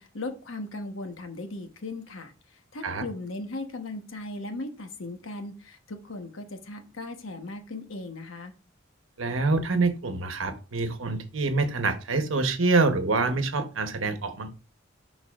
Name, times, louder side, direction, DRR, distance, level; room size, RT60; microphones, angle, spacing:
voice 1, 0.0-8.5, left 2 dB, 90° left, 6 dB, 1.1 m, -38 dB
voice 2, 9.2-14.5, right 3 dB, 85° right, 8 dB, 1.0 m, -26 dB
11.5 x 3.9 x 2.4 m, 0.32 s
head